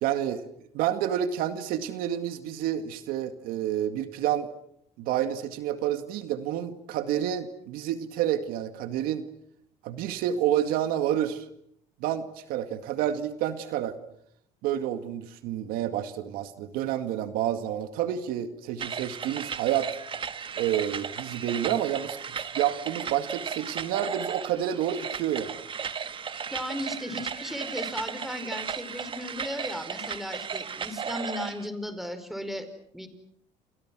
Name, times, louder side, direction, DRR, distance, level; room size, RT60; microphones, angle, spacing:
voice 1, 0.0-0.5 0.7-4.5 5.0-9.3 9.8-11.5 12.0-13.9 14.6-19.9 20.6-25.6 27.1-27.2, right 11 dB, 80° right, 9 dB, 2.1 m, -29 dB
sound 1, 18.8-31.7, right 6 dB, 35° right, 1.6 m, -35 dB
voice 2, 26.5-32.7 32.9-33.1, left 1 dB, ahead, 10 dB, 4.9 m, -36 dB
29.5 x 28.5 x 6.3 m, 0.70 s
cardioid pair, 105°, 15 cm